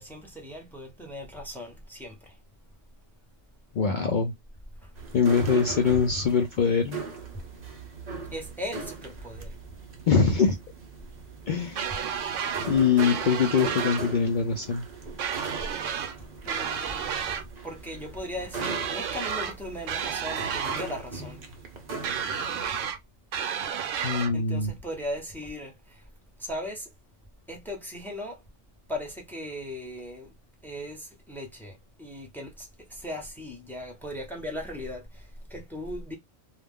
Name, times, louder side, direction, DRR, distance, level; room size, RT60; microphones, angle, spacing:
voice 1, 0.0-2.3 4.8-4.9 8.3-9.5 16.4-17.2 17.6-21.4 24.3-26.0 26.4-26.9 27.5-28.4 28.9-30.3 30.6-36.1, left 1 dB, ahead, 0.7 m, -38 dB
voice 2, 3.7-4.3 5.1-7.0 10.1-10.6 11.5-11.9 12.7-14.9 24.0-24.7, left 6 dB, 65° left, 0.5 m, -23 dB
sound 1, 5.0-22.8, right 4 dB, 45° right, 0.6 m, -40 dB
sound 2, 11.8-12.7 13.0-14.0 15.2-16.1 16.5-17.4 18.6-19.5 19.9-20.9 22.0-23.0 23.3-24.3, right 7 dB, 75° right, 1.0 m, -31 dB
2.4 x 2.1 x 3.4 m
omnidirectional pair, 1.3 m